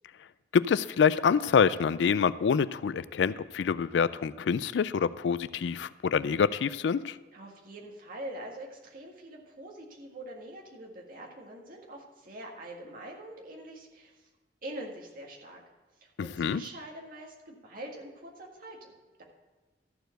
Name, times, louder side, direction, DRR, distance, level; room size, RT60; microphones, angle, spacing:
voice 1, 0.5-7.2 16.2-16.6, left 6 dB, 70° left, 16 dB, 0.4 m, -26 dB
voice 2, 7.3-14.3 14.6-15.6 16.0-18.9, right 1 dB, 50° right, -1 dB, 1.8 m, -44 dB
13.5 x 4.7 x 7.7 m, 1.2 s
head